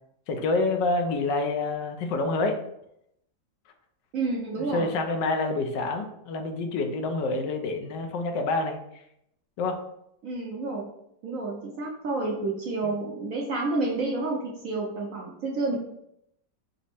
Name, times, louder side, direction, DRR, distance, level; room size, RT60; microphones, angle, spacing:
voice 1, 0.3-2.6 4.6-8.8 9.6-9.8, left 3 dB, 80° left, 5 dB, 1.2 m, -27 dB
voice 2, 4.1-4.9 10.2-10.9 11.2-15.8, right 3 dB, 65° right, -2 dB, 0.8 m, -29 dB
5.1 x 2.0 x 4.2 m, 0.77 s
omnidirectional pair, 2.0 m